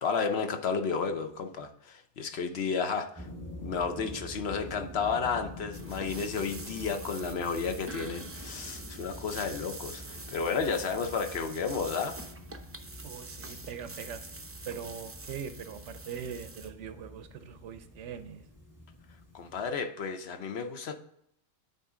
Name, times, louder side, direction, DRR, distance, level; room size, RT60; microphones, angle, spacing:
voice 1, 0.0-3.3 3.6-12.2 19.3-20.9, left 5 dB, 65° left, 1.0 m, -32 dB
sound 1, 3.2-19.7, left 1 dB, 15° left, 1.4 m, -47 dB
sound 2, 5.7-16.7, right 2 dB, 20° right, 0.4 m, -45 dB
voice 2, 13.0-14.2 14.7-18.4, right 8 dB, 90° right, 1.0 m, -41 dB
9.4 x 4.1 x 3.7 m
omnidirectional pair, 1.2 m